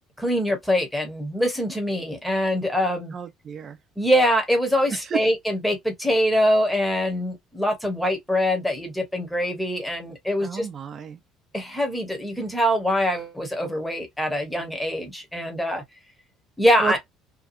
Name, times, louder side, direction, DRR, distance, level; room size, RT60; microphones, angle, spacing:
voice 1, 0.2-3.1 4.0-10.7 11.5-15.8 16.6-17.0, equal, 5° left, 1.1 m, -23 dB
voice 2, 3.1-3.8 4.9-5.2 10.4-11.2 16.8-17.0, right 6 dB, 40° right, 0.6 m, -31 dB
2.8 x 2.2 x 2.5 m
cardioid pair, 110°, 0 cm